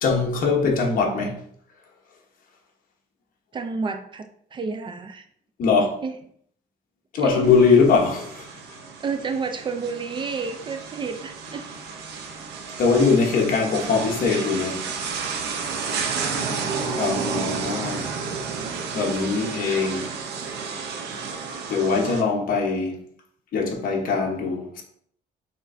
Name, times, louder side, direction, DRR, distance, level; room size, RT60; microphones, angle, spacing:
voice 1, 0.0-1.4 5.6-6.0 7.1-8.5 12.8-14.8 17.0-18.2 18.9-20.1 21.7-23.0 23.5-24.8, left 4 dB, 50° left, 1.0 m, -21 dB
voice 2, 3.5-5.2 6.0-6.2 7.2-7.5 9.0-11.7 16.0-16.8, right 5 dB, 25° right, 0.3 m, -31 dB
sound 1, 7.4-22.2, right 5 dB, 70° right, 0.7 m, -32 dB
6.2 x 3.1 x 2.6 m
cardioid pair, 155°, 18 cm